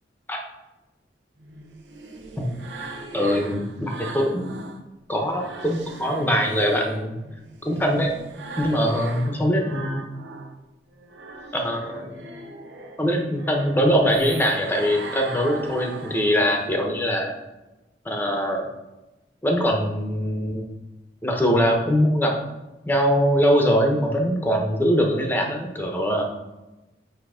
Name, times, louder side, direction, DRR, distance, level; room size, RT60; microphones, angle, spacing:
sound 1, 1.4-4.8 5.2-10.6 10.9-16.8, right 3 dB, 85° right, 0.8 m, -39 dB
voice 1, 3.1-4.6 5.1-7.1 7.6-8.1 8.6-10.0 11.5-12.3 13.0-17.3 18.0-18.7 19.4-20.7 21.2-22.3 22.9-26.3, equal, 10° left, 1 dB, 0.9 m, -22 dB
8.7 x 2.9 x 4.9 m, 1.0 s
head